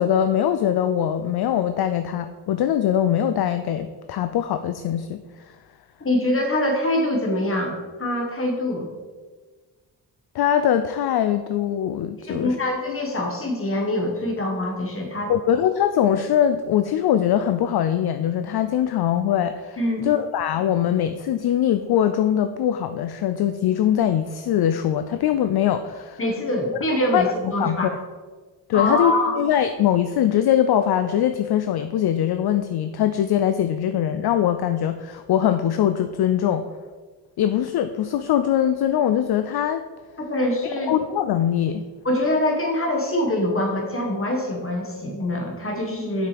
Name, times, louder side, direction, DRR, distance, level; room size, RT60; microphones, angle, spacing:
voice 1, 0.0-5.2 10.3-12.5 15.3-19.8 20.0-26.2 27.1-27.9 28.7-36.6 37.4-39.9 40.8-41.8, left 10 dB, 60° left, 10 dB, 0.5 m, -22 dB
voice 2, 6.0-8.9 12.2-15.3 19.8-20.1 26.2-27.9 28.7-29.3 40.2-40.9 42.0-46.3, left 1 dB, 30° left, 1 dB, 1.6 m, -24 dB
7.5 x 5.9 x 3.4 m, 1.4 s
cardioid pair, 75°, 43 cm